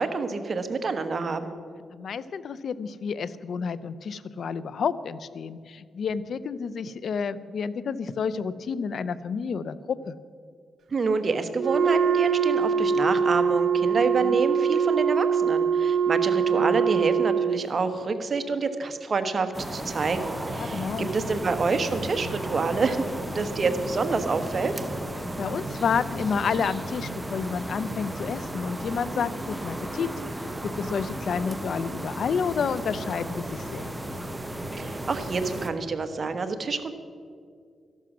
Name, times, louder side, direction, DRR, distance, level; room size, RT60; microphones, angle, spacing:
voice 1, 0.0-1.5 10.9-24.7 34.8-36.9, right 4 dB, 45° right, 8 dB, 1.2 m, -27 dB
voice 2, 1.9-10.1 14.2-14.4 16.5-16.8 20.5-21.1 25.4-30.1 30.6-34.0, left 6 dB, 65° left, 16 dB, 0.6 m, -30 dB
Wind instrument woodwind instrument, 11.5-17.7, right 6 dB, 70° right, 0.8 m, -23 dB
sound 1, 19.5-35.7, right 1 dB, 15° right, 1.1 m, -34 dB
13.5 x 11.5 x 6.2 m, 2.2 s
cardioid pair, 85°, 0 cm